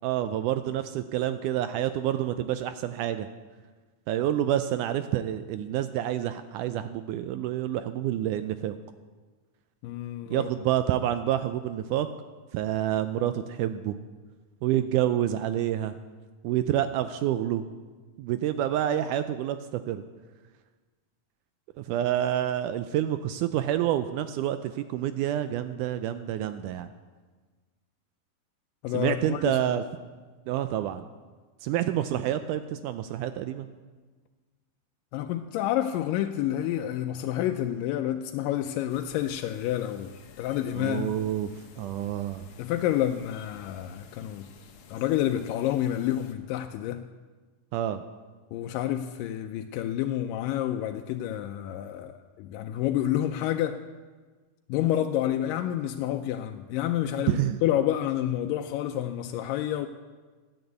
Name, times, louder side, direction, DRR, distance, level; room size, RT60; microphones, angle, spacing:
voice 1, 0.0-3.3 4.1-8.8 10.3-12.1 12.5-14.0 14.6-16.0 16.4-17.7 18.2-20.0 21.8-26.9 28.9-29.8 30.5-31.1 31.6-33.7 40.7-41.5 41.8-42.5 47.7-48.0 57.3-57.6, right 12 dB, 80° right, 1.9 m, -28 dB
voice 2, 9.8-10.5 28.8-29.8 35.1-40.1 40.4-41.1 42.6-44.5 44.9-47.0 48.5-53.8 54.7-59.9, left 12 dB, 85° left, 2.2 m, -29 dB
sound 1, 38.9-46.3, left 6 dB, 70° left, 1.4 m, -53 dB
12.0 x 9.5 x 8.0 m
omnidirectional pair, 3.9 m